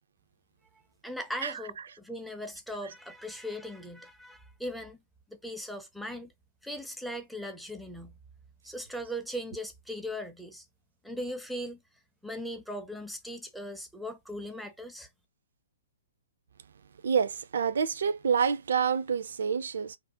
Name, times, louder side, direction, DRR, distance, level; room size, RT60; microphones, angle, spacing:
voice 1, 1.0-5.0 5.3-6.3 6.6-8.2 8.6-10.7 11.0-11.8 12.2-15.1, equal, ahead, 0.4 m, -39 dB
voice 2, 17.0-20.0, right 6 dB, 60° right, 0.3 m, -27 dB
2.5 x 2.0 x 2.6 m
figure-of-eight pair, 120°, 0 cm